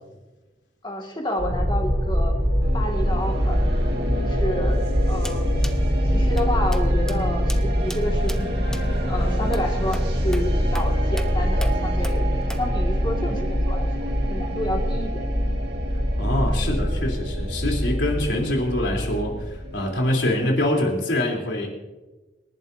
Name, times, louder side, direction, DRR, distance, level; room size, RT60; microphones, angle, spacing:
voice 1, 0.8-2.3 2.7-3.7 4.2-5.5 6.1-8.6 9.0-12.3 12.6-15.3, left 1 dB, 25° left, 1 dB, 2.1 m, -30 dB
sound 1, 1.4-20.3, equal, 30° right, 2.8 m, -24 dB
sound 2, 2.6-20.8, right 1 dB, 65° right, 2.1 m, -34 dB
sound 3, 5.2-5.4 5.6-5.8 6.4-6.5 6.7-6.8 7.1-7.2 7.5-7.6 7.9-8.0 8.3-8.4 8.7-8.8 9.5-9.7 9.9-10.1 10.3-10.5 10.8-10.9 11.2-11.3 11.6-11.7 12.0-12.2 12.5-12.6, left 1 dB, 5° left, 0.6 m, -37 dB
voice 2, 16.2-21.7, left 1 dB, 85° left, -1 dB, 3.6 m, -24 dB
27.5 x 11.0 x 2.8 m, 1.1 s
head